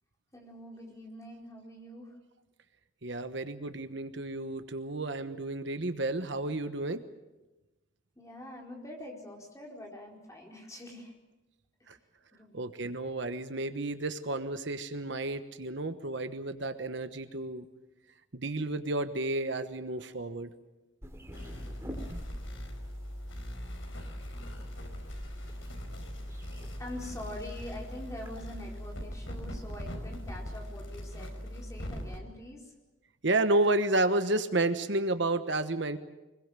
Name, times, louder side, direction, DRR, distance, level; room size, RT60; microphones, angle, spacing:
voice 1, 0.3-2.2 8.2-11.1 12.3-12.6 26.7-32.7, left 1 dB, 15° left, 0 dB, 4.6 m, -44 dB
voice 2, 3.0-7.0 11.9-12.0 12.5-17.7 18.3-20.5 33.2-36.0, right 2 dB, 65° right, 10 dB, 1.2 m, -31 dB
sound 1, 21.0-30.5, equal, 15° right, 2.9 m, -49 dB
sound 2, 21.3-32.2, equal, 75° left, 4.9 m, -40 dB
24.5 x 22.0 x 7.6 m, 1.0 s
head